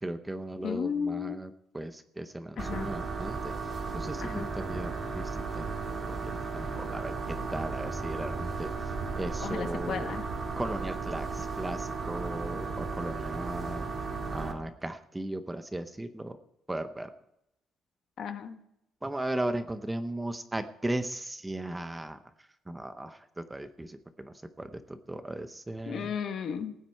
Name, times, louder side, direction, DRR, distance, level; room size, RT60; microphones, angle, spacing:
voice 1, 0.0-5.8 6.1-10.1 10.6-13.9 14.3-16.4 16.7-17.1 19.0-22.2 22.7-26.1, right 1 dB, 10° right, 9 dB, 0.7 m, -37 dB
voice 2, 0.6-1.4 2.6-2.9 4.2-4.4 9.4-10.2 18.2-18.6 25.9-26.8, left 7 dB, 45° left, 9 dB, 1.1 m, -34 dB
sound 1, 2.6-14.5, right 4 dB, 25° right, 1.9 m, -35 dB
18.0 x 9.4 x 4.5 m, 0.82 s
cardioid pair, 160°, 0 cm